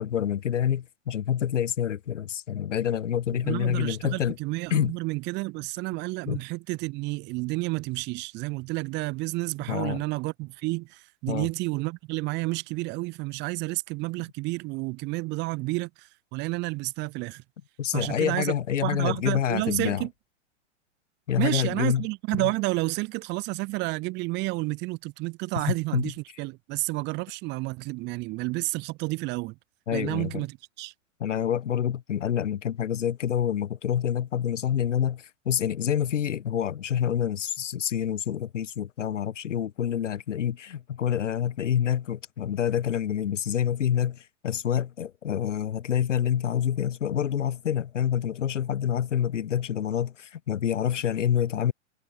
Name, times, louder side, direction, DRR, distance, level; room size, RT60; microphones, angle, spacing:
voice 1, 0.0-4.4 4.7-4.9 6.3-6.4 9.7-10.0 11.3-11.5 17.8-20.1 21.3-22.0 22.4-22.5 25.9-26.1 29.9-30.4 31.2-51.7, left 9 dB, 80° left, 0.6 m, -27 dB
voice 2, 3.4-17.4 17.9-18.5 18.8-20.1 21.4-29.6 29.9-30.9, right 24 dB, 30° right, 0.9 m, -30 dB
figure-of-eight pair, 105°, 37 cm